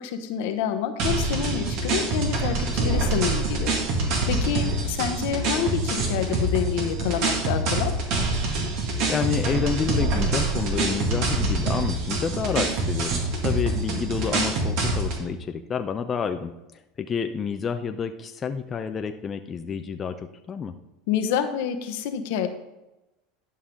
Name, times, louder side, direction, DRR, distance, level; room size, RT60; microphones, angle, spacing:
voice 1, 0.0-3.8 4.3-7.9 21.1-22.5, left 9 dB, 70° left, 7 dB, 1.0 m, -28 dB
sound 1, 1.0-15.2, right 2 dB, 60° right, 2.1 m, -25 dB
voice 2, 9.1-16.5 17.0-20.8, left 6 dB, 30° left, 7 dB, 0.5 m, -29 dB
11.0 x 5.5 x 3.7 m, 0.97 s
supercardioid pair, 105°, 0 cm